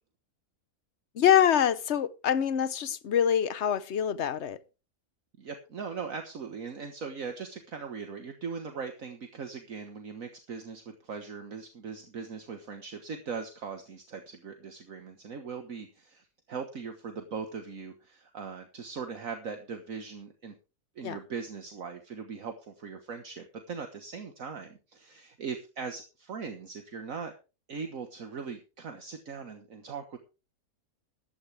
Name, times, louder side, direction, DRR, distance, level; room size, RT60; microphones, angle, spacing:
voice 1, 1.2-4.6 21.0-21.2, left 9 dB, 55° left, 1.0 m, -25 dB
voice 2, 5.4-16.2 16.5-20.6 21.0-27.3 27.7-30.2, right 5 dB, 60° right, 1.7 m, -40 dB
15.5 x 12.0 x 3.4 m
omnidirectional pair, 1.6 m